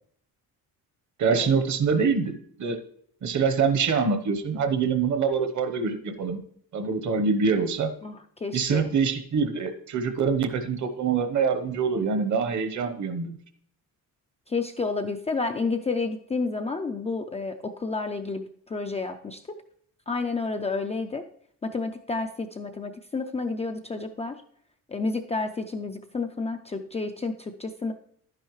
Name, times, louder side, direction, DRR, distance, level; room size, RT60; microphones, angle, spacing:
voice 1, 1.2-2.8 3.2-6.4 6.7-7.9 8.5-13.4, right 5 dB, 50° right, 9 dB, 1.0 m, -25 dB
voice 2, 8.0-8.9 14.5-18.4 18.7-19.4 20.1-21.2 21.6-24.4 24.9-27.9, left 3 dB, 20° left, 5 dB, 0.4 m, -30 dB
11.0 x 10.0 x 3.1 m, 0.64 s
cardioid pair, 150°, 37 cm